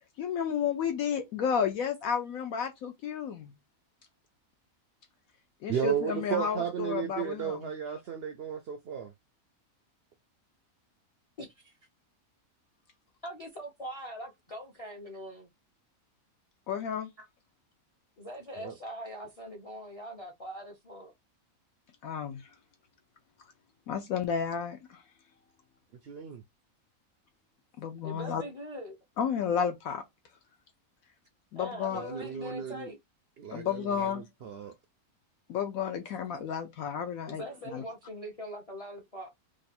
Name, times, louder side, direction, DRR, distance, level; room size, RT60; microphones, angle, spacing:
voice 1, 0.2-3.5 5.6-7.6 16.7-17.1 22.0-22.5 23.9-25.0 27.8-28.4 29.2-30.0 31.5-32.0 33.5-34.2 35.5-37.4 37.7-37.8, left 7 dB, 75° left, 1.0 m, -32 dB
voice 2, 5.7-9.1 17.2-17.3 18.6-18.7 26.0-26.4 31.9-32.9 33.4-34.8, right 8 dB, 70° right, 0.5 m, -34 dB
voice 3, 11.4-11.8 13.2-15.5 18.2-21.1 28.0-29.0 31.5-33.0 37.2-39.3, equal, 35° left, 0.6 m, -42 dB
3.0 x 2.5 x 4.1 m
omnidirectional pair, 1.5 m